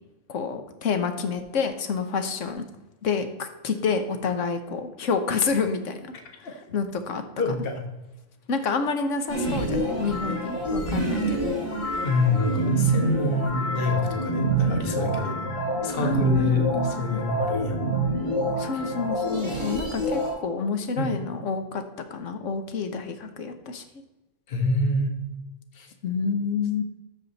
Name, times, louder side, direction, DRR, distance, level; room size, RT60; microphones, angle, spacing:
voice 1, 0.3-2.7 3.0-6.1 6.4-7.2 8.5-11.5 16.0-17.2 18.6-21.8 22.1-23.8 26.0-26.8, left 5 dB, 85° left, 7 dB, 1.3 m, -28 dB
voice 2, 7.4-7.8 12.0-15.5 15.8-17.8 18.7-18.8 21.0-21.2 24.5-25.2 25.7-25.9, left 3 dB, 50° left, 3 dB, 1.4 m, -26 dB
sound 1, 9.3-20.3, right 2 dB, 25° left, 3.2 m, -26 dB
13.5 x 4.9 x 4.0 m, 1.0 s
omnidirectional pair, 1.3 m